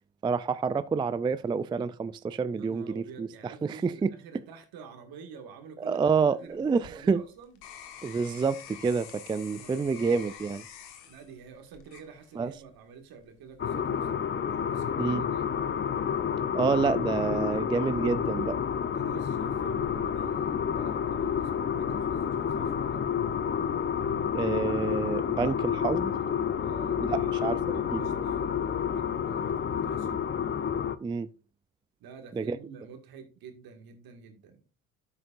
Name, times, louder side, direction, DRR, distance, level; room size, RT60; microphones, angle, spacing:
voice 1, 0.2-4.1 5.8-7.2 8.0-10.6 12.4-12.5 15.0-15.2 16.5-18.6 24.3-26.1 27.0-27.6 27.9-28.0 31.0-31.3 32.3-32.6, right 5 dB, 15° right, 0.3 m, -28 dB
voice 2, 2.5-7.6 9.5-10.1 11.1-14.2 14.5-15.5 18.9-23.1 26.6-30.3 32.0-34.6, right 6 dB, 65° right, 1.9 m, -48 dB
sound 1, 6.5-12.7 13.2-13.7, left 9 dB, 75° left, 1.5 m, -48 dB
sound 2, 13.6-31.0, left 8 dB, 30° left, 0.7 m, -29 dB
12.0 x 6.5 x 2.5 m
hypercardioid pair, 60°, 39 cm